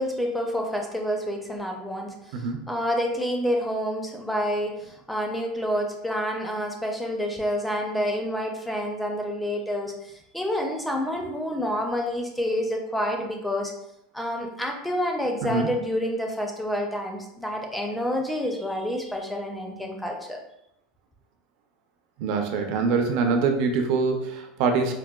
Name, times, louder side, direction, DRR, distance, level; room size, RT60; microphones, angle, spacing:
voice 1, 0.0-13.7 14.1-20.4, equal, 5° left, 1 dB, 0.4 m, -28 dB
voice 2, 22.2-24.9, right 4 dB, 55° right, 4 dB, 0.5 m, -24 dB
4.6 x 2.1 x 2.2 m, 0.79 s
supercardioid pair, 160°, 0 cm